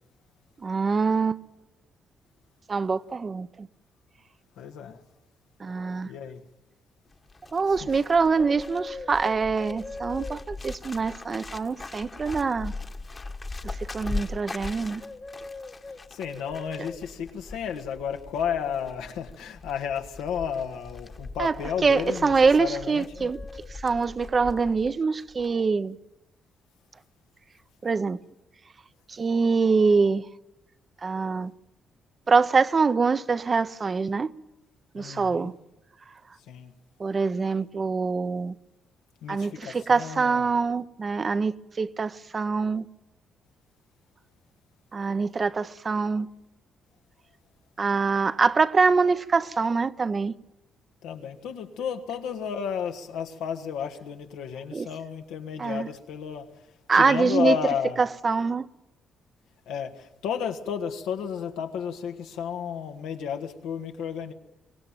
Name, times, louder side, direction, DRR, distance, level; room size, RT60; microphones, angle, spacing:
voice 1, 0.6-1.4 2.7-3.7 5.6-6.1 7.5-12.7 13.6-15.0 21.4-21.5 21.8-23.4 23.7-26.0 27.8-28.2 29.1-30.2 31.0-31.5 32.3-34.3 34.9-35.5 37.0-38.6 39.3-42.8 44.9-46.3 47.8-50.3 54.7-54.9 55.6-55.9 56.9-57.6 58.0-58.7, right 4 dB, 40° right, 0.8 m, -24 dB
voice 2, 4.6-5.0 6.0-6.4 7.8-7.9 16.1-23.3 34.9-35.5 36.5-36.7 39.2-40.5 51.0-56.5 56.9-58.0 59.7-64.3, left 7 dB, 90° left, 1.7 m, -32 dB
Bird, 7.1-24.9 25.2-25.5, left 3 dB, 30° left, 1.3 m, -39 dB
24.5 x 17.0 x 9.0 m
cardioid pair, 75°, 0 cm